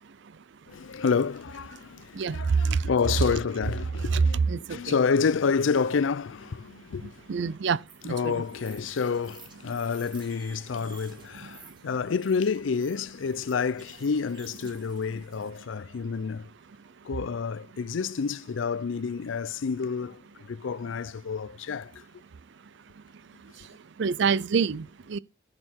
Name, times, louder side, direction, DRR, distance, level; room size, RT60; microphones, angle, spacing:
voice 1, 0.7-7.2 8.0-16.5 17.0-22.0, left 5 dB, 80° left, 0.5 m, -29 dB
voice 2, 2.2-2.8 4.1-4.8 7.3-7.8 8.0-8.4 24.0-25.2, right 5 dB, 65° right, 0.5 m, -25 dB
sound 1, 7.9-15.5, right 4 dB, 25° right, 2.5 m, -54 dB
14.0 x 6.6 x 4.5 m
head